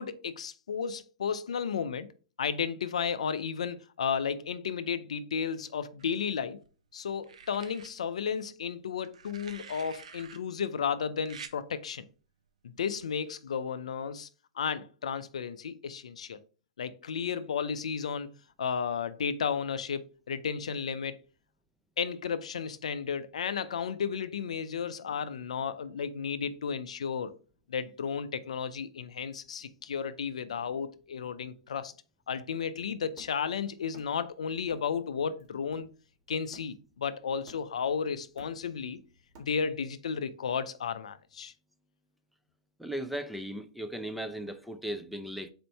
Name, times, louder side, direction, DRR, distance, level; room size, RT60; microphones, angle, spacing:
voice 1, 0.0-2.1 2.4-6.6 6.9-12.0 12.6-14.3 14.6-16.4 16.8-18.3 18.6-21.2 22.0-27.3 27.7-31.9 32.3-35.9 36.3-39.0 39.4-41.5, left 6 dB, 80° left, 0.4 m, -33 dB
sound 1, 6.0-6.7 7.2-7.9 9.0-10.4 11.3-11.6 12.9-13.1, right 6 dB, 80° right, 0.6 m, -48 dB
Hammer, 33.2-34.3 34.7-35.0 35.4-37.0 37.5-37.9 38.2-39.9, right 1 dB, 45° right, 1.7 m, -55 dB
voice 2, 42.8-45.5, right 1 dB, ahead, 0.5 m, -37 dB
4.3 x 2.7 x 4.4 m
hypercardioid pair, 125°, 3 cm